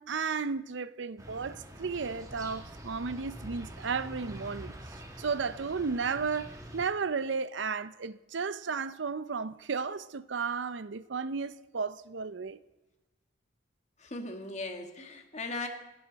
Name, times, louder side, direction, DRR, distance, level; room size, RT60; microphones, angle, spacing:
voice 1, 0.0-4.7 5.2-12.6, right 5 dB, 65° right, 0.6 m, -34 dB
sound 1, 1.2-6.8, equal, 20° right, 2.5 m, -46 dB
voice 2, 14.0-15.7, left 2 dB, 35° left, 1.9 m, -38 dB
30.0 x 11.5 x 4.1 m
head